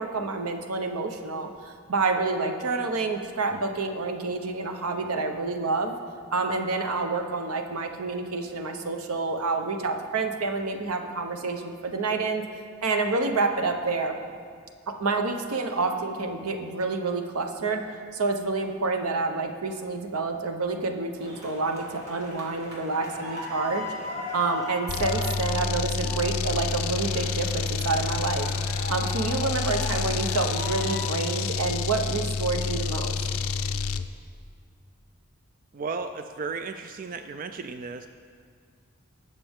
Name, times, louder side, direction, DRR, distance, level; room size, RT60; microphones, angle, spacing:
voice 1, 0.0-5.9 6.3-12.4 12.8-14.1 14.9-17.8 18.1-23.9 24.3-28.5 28.9-33.2, right 3 dB, 90° right, 5 dB, 0.9 m, -28 dB
sound 1, 21.2-31.0, left 1 dB, 65° right, 2.5 m, -38 dB
sound 2, 24.9-34.1, left 5 dB, 75° left, 0.4 m, -29 dB
voice 2, 35.7-38.1, right 4 dB, 40° right, 8 dB, 0.3 m, -34 dB
19.5 x 6.7 x 3.6 m, 2.1 s
head